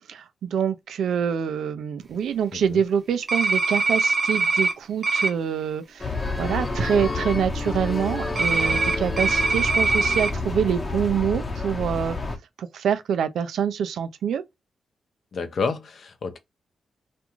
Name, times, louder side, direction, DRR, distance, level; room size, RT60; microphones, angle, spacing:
voice 1, 0.1-12.2 12.6-14.4, right 8 dB, 85° right, 0.4 m, -26 dB
sound 1, 3.3-4.7 5.0-5.3 8.4-10.3, right 3 dB, 50° right, 0.7 m, -22 dB
sound 2, 6.0-12.4, left 3 dB, 35° left, 0.8 m, -29 dB
voice 2, 15.3-16.4, left 4 dB, 60° left, 0.6 m, -29 dB
2.5 x 2.3 x 2.9 m
cardioid pair, 70°, 0 cm